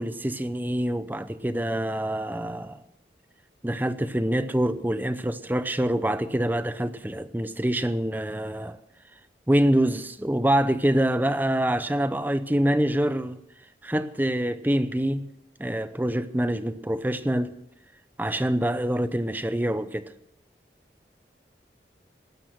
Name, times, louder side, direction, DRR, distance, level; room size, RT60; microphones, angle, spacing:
voice 1, 0.0-2.8 3.6-8.8 9.5-13.4 13.8-15.2 15.6-17.6 18.2-20.1, right 1 dB, 10° right, 0.7 m, -25 dB
17.5 x 13.0 x 6.1 m
head